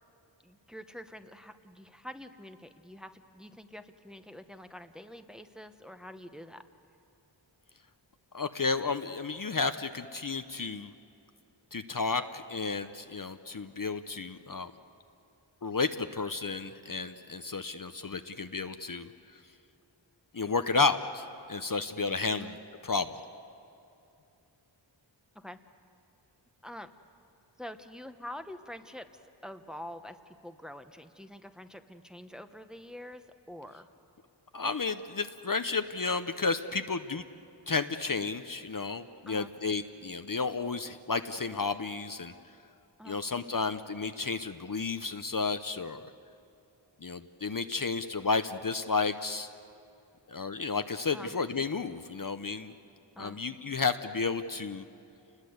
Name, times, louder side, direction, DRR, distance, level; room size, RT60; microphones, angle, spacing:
voice 1, 0.4-6.6 22.4-22.5 25.3-25.6 26.6-26.9 27.6-29.1 29.4-33.9 39.3-39.5 43.0-43.2 51.1-51.3 53.2-53.4, left 1 dB, ahead, 8 dB, 1.1 m, -46 dB
voice 2, 8.3-10.9 11.7-14.7 15.6-19.1 20.3-22.6 22.8-23.2 34.5-37.2 37.7-42.3 43.0-46.1 47.0-49.5 50.3-52.7 53.2-54.8, left 4 dB, 45° left, 9 dB, 0.8 m, -32 dB
28.5 x 20.5 x 8.0 m, 2.7 s
wide cardioid pair, 60°, 46 cm